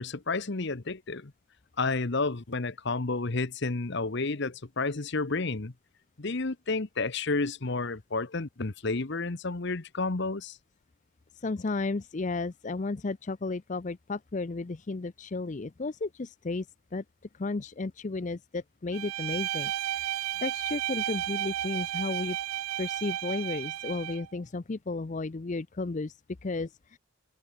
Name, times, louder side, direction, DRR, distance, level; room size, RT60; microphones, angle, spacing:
voice 1, 0.0-1.3 1.8-5.7 6.2-10.6, left 3 dB, 50° left, 1.0 m, -31 dB
voice 2, 11.3-16.7 16.9-17.0 17.3-22.4 22.8-27.0, left 3 dB, 35° left, 0.5 m, -33 dB
Bowed string instrument, 18.9-24.3, right 13 dB, 80° right, 0.3 m, -33 dB
head